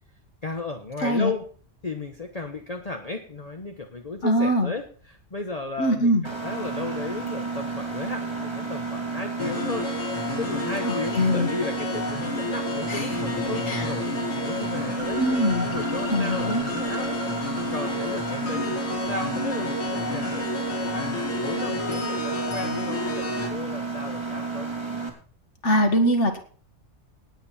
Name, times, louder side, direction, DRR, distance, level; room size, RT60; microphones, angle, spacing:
voice 1, 0.4-1.4 1.8-9.9 10.4-15.2 15.6-24.7, left 3 dB, 30° left, 4 dB, 1.3 m, -35 dB
voice 2, 1.0-1.3 4.2-4.7 5.8-6.2 10.8-11.5 12.9-13.2 13.7-13.9 15.2-15.7 16.1-16.6 25.6-26.4, equal, 65° left, 4 dB, 2.2 m, -22 dB
Mechanisms, 6.2-25.1, right 4 dB, 20° right, 3.0 m, -32 dB
sound 1, 9.4-23.5, left 3 dB, 85° left, 3.1 m, -31 dB
18.5 x 8.1 x 4.4 m, 0.43 s
omnidirectional pair, 1.3 m